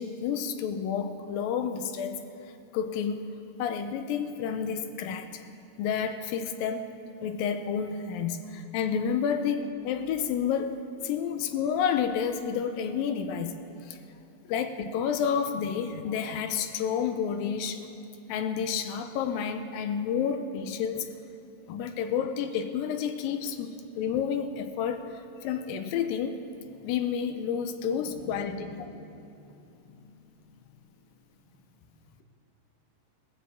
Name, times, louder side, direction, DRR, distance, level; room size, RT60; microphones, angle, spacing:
voice 1, 0.0-2.2 2.7-3.2 3.6-5.4 5.8-6.9 7.2-14.0 14.5-17.9 18.3-21.1 21.7-26.4 26.8-28.7, left 7 dB, 90° left, 8 dB, 2.5 m, -30 dB
voice 2, 28.2-29.5 29.8-30.1, left 4 dB, 70° left, 3 dB, 2.7 m, -45 dB
18.5 x 15.0 x 3.6 m, 2.8 s
omnidirectional pair, 4.0 m